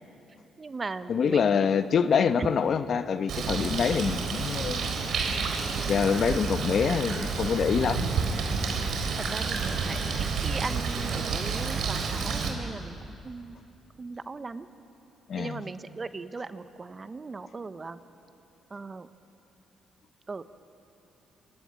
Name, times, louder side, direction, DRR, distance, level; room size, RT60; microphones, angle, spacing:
voice 1, 0.6-1.5 2.4-2.5 8.4-8.8 9.3-10.0 10.4-13.0 13.2-13.6 14.0-14.7 15.3-18.0 18.7-19.1 20.3-20.4, right 4 dB, 30° right, 11 dB, 1.1 m, -38 dB
voice 2, 1.1-4.9 5.9-8.1 15.3-15.6, left 6 dB, 55° left, 11 dB, 1.0 m, -25 dB
Bird, 3.3-12.5, right 5 dB, 70° right, 3.9 m, -30 dB
27.0 x 23.0 x 9.0 m, 2.9 s
cardioid pair, 90°, 0 cm